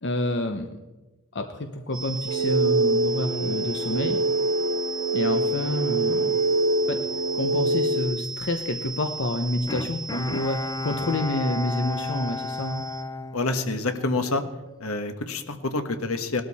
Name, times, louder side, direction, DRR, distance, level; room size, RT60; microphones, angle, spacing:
voice 1, 0.0-0.7 1.3-4.2 5.1-6.4 6.9-7.0 7.3-12.8, left 1 dB, 55° left, 6 dB, 0.9 m, -28 dB
sound 1, 1.9-13.0, right 3 dB, ahead, 5.3 m, -36 dB
sound 2, 2.3-8.0, right 2 dB, 65° right, 1.6 m, -24 dB
Bowed string instrument, 9.7-14.2 14.6-14.7, left 3 dB, 15° left, 0.4 m, -33 dB
voice 2, 13.3-14.4 14.8-16.4, left 3 dB, 75° left, 8 dB, 1.4 m, -27 dB
19.0 x 12.5 x 4.3 m, 1.1 s
head